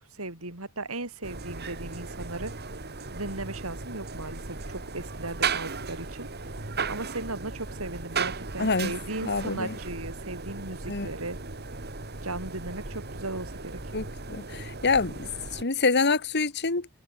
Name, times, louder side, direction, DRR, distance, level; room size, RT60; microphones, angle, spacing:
voice 1, 0.1-2.5 3.1-6.3 6.5-11.4 12.2-13.8, right 2 dB, 70° right, 6.0 m, -37 dB
sound 1, 1.2-15.6, right 4 dB, 50° right, 3.1 m, -36 dB
voice 2, 8.6-8.9 9.2-9.7 10.9-11.1 13.9-16.9, left 4 dB, 50° left, 1.9 m, -26 dB
head